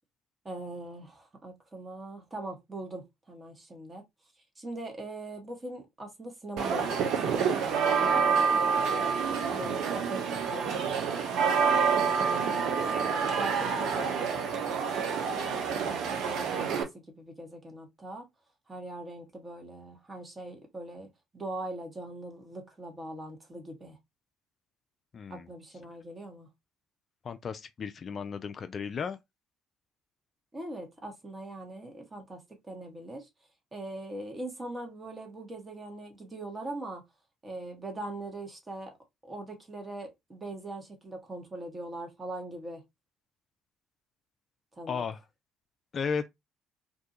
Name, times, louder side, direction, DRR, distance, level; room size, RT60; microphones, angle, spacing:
voice 1, 0.4-4.0 4.6-8.2 9.5-10.8 12.2-14.8 15.1-18.3 18.7-24.0 25.3-26.5 30.5-33.3 33.7-37.0 37.4-38.9 39.2-42.8 44.8-45.0, right 1 dB, 25° right, 1.1 m, -41 dB
sound 1, 6.6-16.8, right 6 dB, 65° right, 0.5 m, -28 dB
voice 2, 25.1-25.5 27.2-29.2 44.9-45.2 45.9-46.3, left 6 dB, 45° left, 0.3 m, -34 dB
2.5 x 2.3 x 2.6 m
hypercardioid pair, 55°, 0 cm